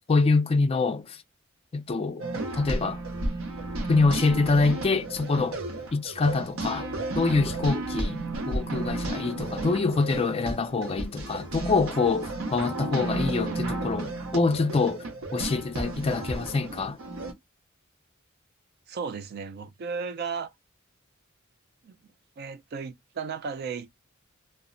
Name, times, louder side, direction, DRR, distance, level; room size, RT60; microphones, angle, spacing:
voice 1, 0.1-1.2 1.7-2.2 2.5-3.0 3.9-5.6 5.9-6.9 7.2-15.0 15.3-17.0, left 3 dB, 30° left, 0.3 m, -25 dB
sound 1, 2.2-17.3, right 2 dB, 75° right, 0.7 m, -33 dB
voice 2, 18.9-20.5 21.8-22.0 22.4-23.9, right 5 dB, 50° right, 0.4 m, -34 dB
2.1 x 2.0 x 3.7 m
head